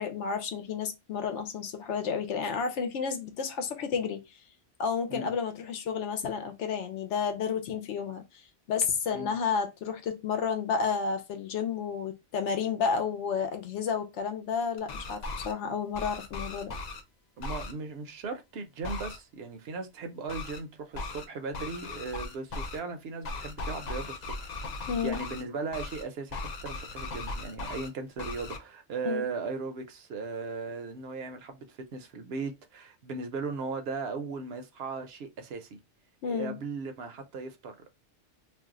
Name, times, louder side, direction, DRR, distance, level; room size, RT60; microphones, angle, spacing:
voice 1, 0.0-4.4 4.8-16.7 24.9-25.2 29.0-29.3 36.2-36.6, left 6 dB, 90° left, 0.9 m, -31 dB
sound 1, 14.8-15.5 15.9-17.0 17.4-17.7 18.8-19.2 20.3-20.6 20.9-21.3 21.5-22.8 23.2-25.4 25.7-26.0 26.3-27.9 28.2-28.6, left 3 dB, 50° left, 0.5 m, -38 dB
voice 2, 17.4-24.5 25.0-35.8 36.3-37.9, right 4 dB, 65° right, 0.8 m, -37 dB
2.5 x 2.1 x 3.5 m
omnidirectional pair, 1.2 m